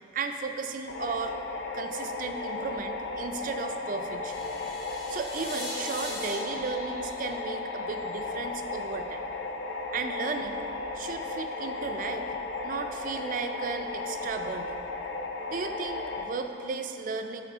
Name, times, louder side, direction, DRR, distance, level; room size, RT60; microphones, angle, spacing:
voice 1, 0.1-1.4 1.7-4.5 5.1-9.3 9.9-10.6 10.9-12.3 12.6-14.8 15.5-17.4, right 4 dB, 50° right, 6 dB, 0.4 m, -35 dB
sound 1, 0.9-16.2, left 3 dB, 90° left, 0.5 m, -35 dB
sound 2, 4.2-8.3, left 1 dB, 30° left, 1.3 m, -41 dB
8.0 x 4.5 x 3.6 m, 2.9 s
head